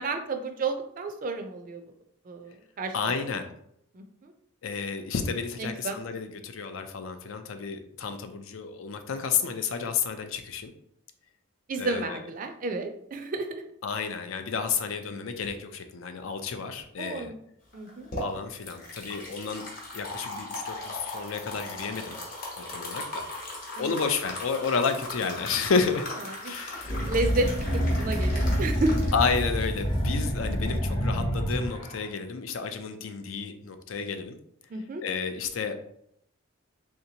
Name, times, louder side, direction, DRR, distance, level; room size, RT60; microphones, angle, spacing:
voice 1, 0.0-1.8 2.3-2.9 3.9-4.3 5.6-6.0 11.7-13.6 17.0-17.3 17.7-18.1 23.8-23.9 26.4-26.5 26.9-27.5 28.0-29.1 34.7-35.0, right 2 dB, 40° right, 6 dB, 0.4 m, -31 dB
voice 2, 2.9-3.5 4.6-10.7 11.8-12.2 13.8-17.3 18.2-19.7 19.9-22.2 22.6-23.3 23.8-26.1 26.4-26.9 29.1-34.4 35.0-35.7, left 5 dB, 70° left, 8 dB, 0.4 m, -31 dB
sound 1, 17.7-30.7, left 2 dB, 40° left, 0.9 m, -39 dB
sound 2, 26.8-32.1, equal, 20° left, 0.5 m, -27 dB
3.3 x 2.8 x 2.7 m, 0.72 s
head